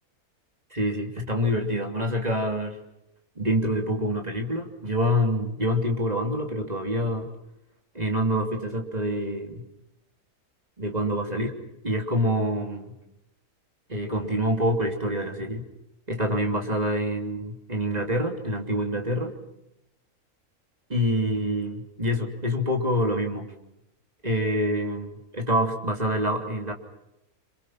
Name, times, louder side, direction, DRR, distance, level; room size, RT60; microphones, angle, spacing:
voice 1, 0.7-2.8 3.4-7.3 7.9-9.6 10.8-11.6 11.8-12.9 13.9-15.6 16.1-19.3 20.9-23.5 24.2-26.7, equal, 25° right, 2 dB, 3.3 m, -26 dB
28.5 x 27.0 x 6.0 m, 0.84 s
omnidirectional pair, 1.6 m